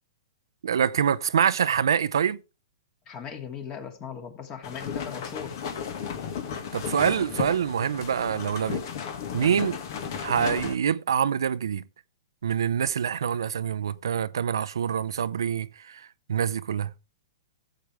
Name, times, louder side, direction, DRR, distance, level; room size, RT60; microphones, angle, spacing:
voice 1, 0.6-2.4 6.7-8.8 9.3-9.8 10.2-11.8 12.4-16.9, right 8 dB, 80° right, 0.5 m, -25 dB
voice 2, 3.1-5.6 9.5-9.8, left 7 dB, 30° left, 2.4 m, -38 dB
sound 1, 4.6-10.7, left 7 dB, 60° left, 1.9 m, -34 dB
15.5 x 7.8 x 3.5 m
hypercardioid pair, 125°, 2 cm